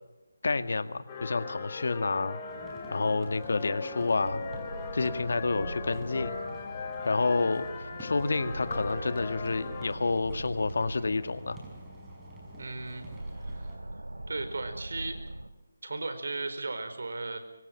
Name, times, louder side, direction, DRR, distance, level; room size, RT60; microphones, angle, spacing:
voice 1, 0.4-2.4 2.9-4.4 4.9-6.4 7.0-11.6, left 3 dB, 60° left, 11 dB, 1.9 m, -29 dB
sound 1, 1.1-9.9, left 4 dB, 25° left, 4.0 m, -39 dB
sound 2, 2.5-13.8, right 1 dB, 10° right, 5.6 m, -49 dB
sound 3, 4.2-15.5, right 1 dB, 85° right, 2.8 m, -42 dB
voice 2, 12.6-13.0 13.4-13.7 14.3-15.2 15.8-17.4, right 3 dB, 65° right, 8 dB, 4.7 m, -36 dB
25.0 x 24.0 x 6.1 m, 1.0 s
figure-of-eight pair, 155°, 0 cm